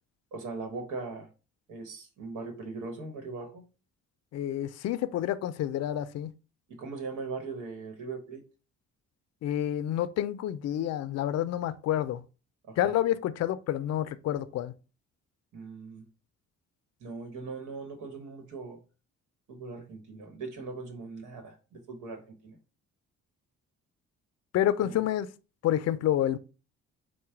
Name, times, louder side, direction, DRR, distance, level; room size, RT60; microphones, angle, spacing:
voice 1, 0.3-1.3 1.7-3.6 6.7-8.4 12.6-12.9 15.5-16.1 17.0-18.8 19.5-22.6 24.8-25.0, right 4 dB, 80° right, 1.2 m, -40 dB
voice 2, 4.3-6.3 9.4-12.2 12.8-14.7 24.5-25.3 25.6-26.4, left 12 dB, 60° left, 0.4 m, -28 dB
4.6 x 2.2 x 4.3 m
cardioid pair, 90°, 30 cm